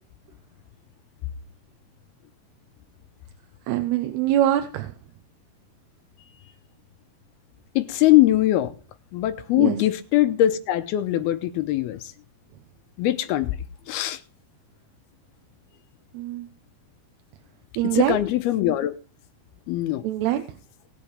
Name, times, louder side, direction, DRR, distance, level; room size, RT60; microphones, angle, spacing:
voice 1, 3.7-4.9 9.6-9.8 16.1-16.5 17.8-18.2 20.0-20.4, right 12 dB, 80° right, 2.9 m, -23 dB
voice 2, 7.8-8.7 9.1-12.1 13.0-13.6 13.9-14.2 17.9-18.9 19.7-20.0, left 14 dB, 80° left, 2.6 m, -21 dB
20.0 x 6.8 x 3.4 m
omnidirectional pair, 4.7 m